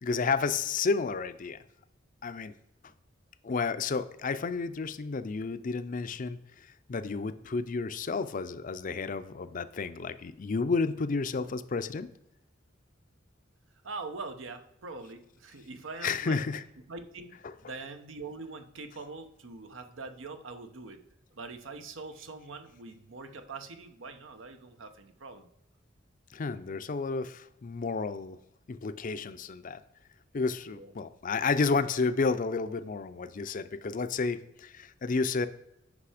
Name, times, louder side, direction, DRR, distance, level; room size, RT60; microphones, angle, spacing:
voice 1, 0.0-1.6 2.2-2.5 3.4-12.1 16.0-16.6 17.4-17.5 26.3-28.4 28.7-29.8 30.3-35.5, left 4 dB, 45° left, 12 dB, 0.5 m, -31 dB
voice 2, 13.8-16.4 16.9-17.4 17.6-21.0 21.3-25.5 30.7-30.9, right 3 dB, 80° right, 8 dB, 0.9 m, -43 dB
8.3 x 5.6 x 4.9 m, 0.86 s
head